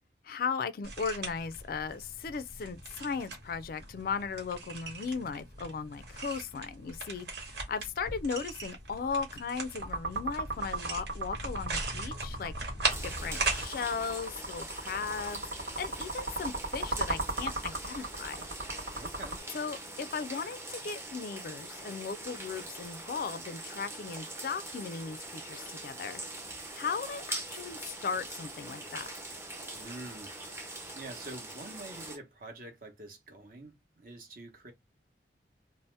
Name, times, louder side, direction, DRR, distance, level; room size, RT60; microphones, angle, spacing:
voice 1, 0.2-12.5 13.0-18.5 19.5-26.2 26.7-29.1, left 5 dB, 55° left, 0.3 m, -37 dB
sound 1, 0.8-13.7, right 3 dB, 65° right, 1.3 m, -39 dB
sound 2, 9.8-19.4, right 2 dB, 80° right, 1.2 m, -36 dB
sound 3, 12.9-32.2, right 2 dB, 15° right, 0.5 m, -43 dB
voice 2, 18.9-19.4 29.7-30.4 30.9-34.7, right 2 dB, 50° right, 0.9 m, -46 dB
2.7 x 2.0 x 3.2 m
head